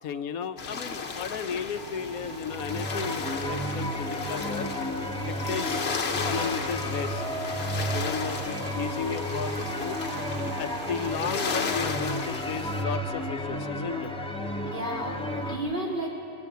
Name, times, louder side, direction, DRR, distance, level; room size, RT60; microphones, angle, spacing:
voice 1, 0.0-4.7 5.2-7.2 7.9-10.0 10.6-14.1, left 7 dB, 75° left, 9 dB, 1.2 m, -34 dB
sound 1, 0.6-12.8, left 5 dB, 50° left, 1.3 m, -35 dB
sound 2, 1.7-11.2, right 7 dB, 80° right, 1.3 m, -44 dB
sound 3, 2.4-15.6, equal, 5° left, 1.6 m, -32 dB
voice 2, 14.6-16.1, right 1 dB, 40° right, -3 dB, 4.0 m, -34 dB
20.0 x 18.5 x 9.2 m, 2.5 s
omnidirectional pair, 1.5 m